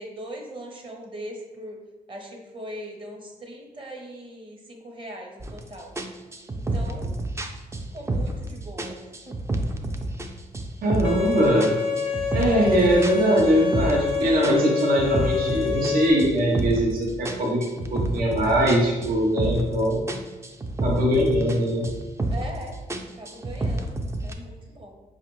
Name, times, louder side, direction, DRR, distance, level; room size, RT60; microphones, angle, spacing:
voice 1, 0.0-1.8 2.1-5.9 6.5-7.2 7.9-9.0 9.3-9.4 22.3-22.8 23.2-24.9, right 1 dB, 35° right, 1 dB, 0.9 m, -40 dB
sound 1, 5.4-5.6 6.0-8.5 8.8-10.3 10.5-11.3 11.6-14.1 14.4-16.9 17.2-19.8 20.1-21.6 21.8-22.6 22.9-24.3, right 1 dB, 20° right, 0.4 m, -29 dB
voice 2, 10.8-11.7 12.3-17.6 17.9-20.0 20.8-21.8, equal, 70° right, -3 dB, 0.8 m, -21 dB
Bowed string instrument, 11.0-16.1, left 6 dB, 75° left, 0.7 m, -27 dB
5.0 x 2.4 x 3.0 m, 1.1 s
cardioid pair, 75°, 15 cm